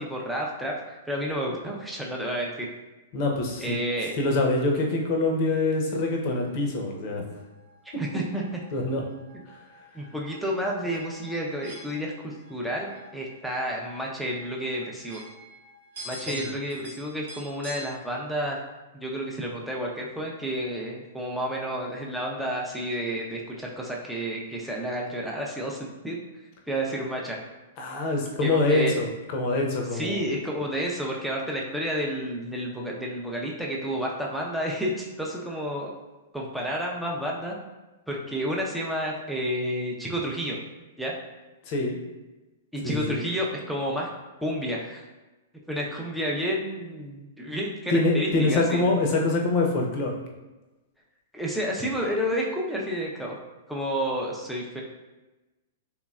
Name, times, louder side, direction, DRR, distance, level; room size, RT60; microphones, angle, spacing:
voice 1, 0.0-2.7 3.6-4.1 8.0-8.6 9.9-15.2 16.0-18.6 18.9-26.2 26.7-27.4 28.4-28.9 29.9-35.9 36.3-37.6 38.1-40.6 41.0-41.1 42.7-44.1 44.4-45.0 45.7-48.8 51.3-53.3 53.7-54.8, equal, ahead, -3 dB, 0.6 m, -30 dB
voice 2, 3.1-3.8 4.2-7.2 7.9-8.0 8.7-9.0 9.5-9.6 16.3-16.4 27.8-30.3 41.7-42.0 42.8-43.2 47.9-50.2, left 2 dB, 45° left, 1 dB, 0.7 m, -25 dB
sound 1, 6.1-17.9, right 1 dB, 70° right, 0.9 m, -47 dB
3.4 x 3.0 x 2.4 m, 1.1 s
figure-of-eight pair, 105°, 0 cm